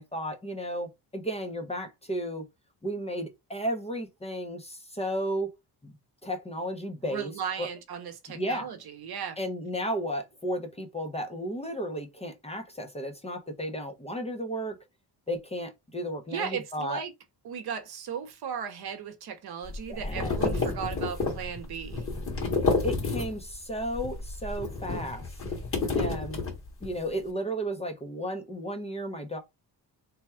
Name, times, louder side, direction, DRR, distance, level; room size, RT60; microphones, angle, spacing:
voice 1, 0.0-2.5 2.8-5.5 5.8-6.0 6.2-7.3 7.6-7.7 8.3-8.7 9.4-14.8 15.3-17.0 19.9-20.4 22.8-25.2 26.0-26.4 26.8-29.4, equal, 15° left, 0.6 m, -33 dB
voice 2, 7.0-9.4 16.3-17.1 17.4-22.1, right 7 dB, 60° right, 0.8 m, -36 dB
sound 1, 19.6-23.6 23.9-27.0, left 3 dB, 30° left, 1.7 m, -30 dB
3.4 x 2.2 x 4.2 m
wide cardioid pair, 165°, 42 cm